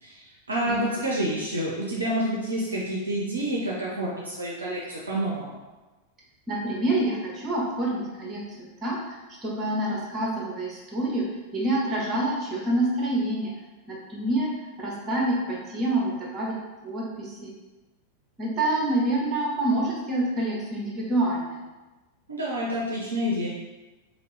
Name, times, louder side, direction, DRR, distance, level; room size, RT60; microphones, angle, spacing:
voice 1, 0.0-5.6 22.3-23.5, right 1 dB, 75° right, -4 dB, 0.5 m, -28 dB
voice 2, 0.6-1.0 6.5-8.4 8.8-9.2 9.4-11.2 11.5-13.5 13.9-14.5 14.8-16.6 16.8-17.5 18.4-21.6, right 1 dB, 20° right, -4 dB, 0.9 m, -27 dB
2.8 x 2.7 x 3.2 m, 1.1 s
figure-of-eight pair, 90°, 0 cm